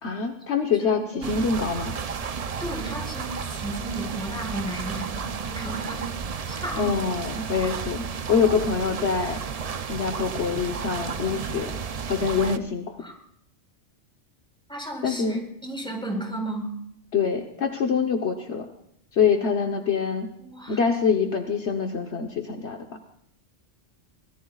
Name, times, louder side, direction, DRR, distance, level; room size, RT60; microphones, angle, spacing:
voice 1, 0.0-1.0 1.3-1.9 6.8-9.4 9.9-11.7 12.1-13.0 15.0-15.4 17.1-18.7 19.1-20.3 20.7-22.8, left 6 dB, 65° left, 3 dB, 1.3 m, -25 dB
voice 2, 0.7-1.3 2.6-6.1 6.5-7.0 13.0-13.1 14.7-16.7 20.4-20.8, right 1 dB, 5° left, 1 dB, 4.2 m, -34 dB
sound 1, 1.2-12.6, right 6 dB, 45° right, 0.5 m, -32 dB
24.5 x 18.0 x 2.4 m, 0.70 s
omnidirectional pair, 1.2 m